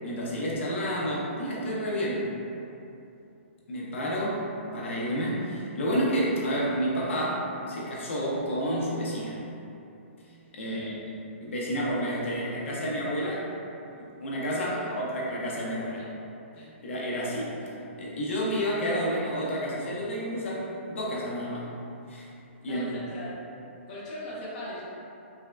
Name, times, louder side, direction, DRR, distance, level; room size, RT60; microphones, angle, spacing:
voice 1, 0.0-2.3 3.7-4.4 4.7-9.4 10.5-11.0 11.4-13.5 13.9-16.1 16.8-17.5 18.0-21.7 22.1-22.3 22.6-22.9, equal, 70° left, -5 dB, 0.8 m, -30 dB
voice 2, 14.7-15.0 16.0-16.1 16.3-16.7 22.7-23.4 23.9-24.8, left 1 dB, 30° left, -8 dB, 0.6 m, -40 dB
3.6 x 3.3 x 2.2 m, 2.8 s
hypercardioid pair, 170°, 7 cm